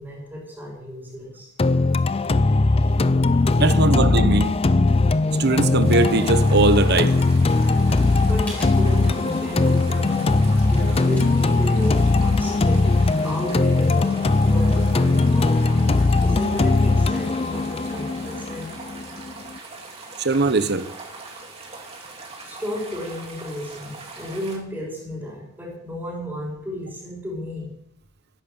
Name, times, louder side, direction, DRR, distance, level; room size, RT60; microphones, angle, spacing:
voice 1, 0.0-1.5 2.6-3.0 3.3-3.6 8.1-12.9 13.2-15.9 16.2-18.7 22.5-27.7, left 1 dB, 10° right, 5.6 m, -33 dB
sound 1, 1.6-19.6, left 3 dB, 30° left, 0.5 m, -19 dB
voice 2, 3.6-4.6 5.3-7.1 20.2-20.9, right 3 dB, 55° right, 1.0 m, -20 dB
sound 2, 5.8-24.6, right 3 dB, 30° right, 3.1 m, -41 dB
sound 3, 8.5-13.1, equal, 5° left, 4.9 m, -46 dB
14.5 x 11.0 x 6.9 m
head